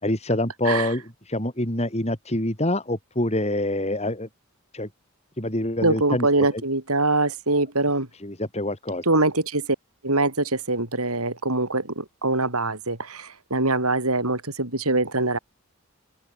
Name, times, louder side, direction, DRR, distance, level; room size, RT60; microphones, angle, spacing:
voice 1, 0.0-4.3 4.7-4.9 5.4-6.6 8.2-9.0, left 1 dB, 30° left, 5.2 m, -26 dB
voice 2, 5.8-8.1 9.0-9.7 10.0-15.4, right 2 dB, 85° right, 7.2 m, -23 dB
open air
head